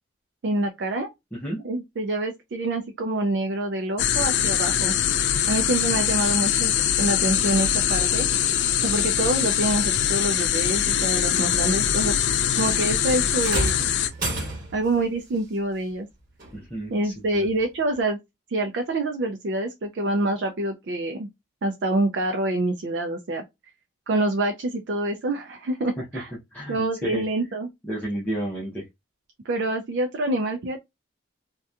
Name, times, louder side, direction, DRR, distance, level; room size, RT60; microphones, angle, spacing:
voice 1, 0.4-1.1 1.6-4.9 5.5-6.7 7.0-8.3 8.8-12.1 12.6-13.8 14.7-16.1 16.9-18.2 18.5-21.3 21.6-23.4 24.1-26.3 26.7-27.7 29.5-30.8, right 2 dB, 60° right, 0.4 m, -26 dB
sound 1, 4.0-14.1, left 9 dB, 60° left, 0.3 m, -23 dB
sound 2, 13.4-14.9 16.4-16.6 17.4-17.5, right 2 dB, 45° right, 1.2 m, -29 dB
voice 2, 16.5-17.5 26.0-26.2 26.5-27.3 27.9-28.8, right 1 dB, 10° left, 0.6 m, -32 dB
2.8 x 2.2 x 2.3 m
head